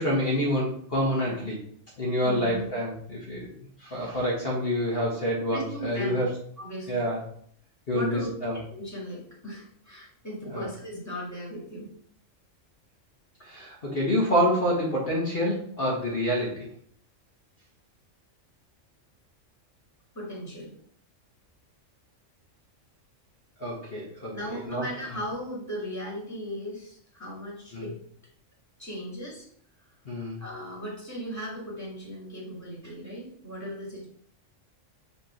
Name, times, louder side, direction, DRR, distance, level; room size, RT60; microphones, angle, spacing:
voice 1, 0.0-1.6 2.0-6.3 6.9-7.2 7.9-8.6 10.5-10.7 13.4-16.7 23.6-24.8 27.7-27.8 30.0-30.4, equal, 50° left, -5 dB, 1.6 m, -27 dB
voice 2, 2.2-2.6 5.5-6.2 6.6-7.1 7.9-8.3 8.7-11.9 20.1-20.7 24.3-28.0 28.8-29.5 30.4-34.1, equal, 10° left, -3 dB, 2.2 m, -37 dB
5.6 x 3.6 x 5.8 m, 0.63 s
omnidirectional pair, 1.3 m